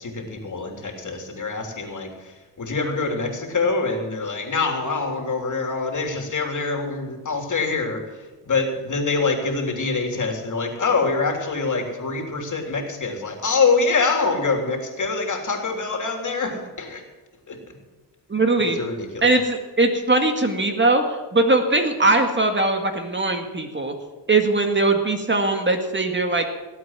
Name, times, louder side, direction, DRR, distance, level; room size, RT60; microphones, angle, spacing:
voice 1, 0.0-17.0 17.5-17.8 18.7-19.3, left 4 dB, 45° left, 3 dB, 3.4 m, -25 dB
voice 2, 18.3-18.8 19.2-23.9 24.3-26.4, right 2 dB, 25° right, 5 dB, 1.9 m, -20 dB
18.0 x 8.3 x 7.5 m, 1.2 s
cardioid pair, 80°, 43 cm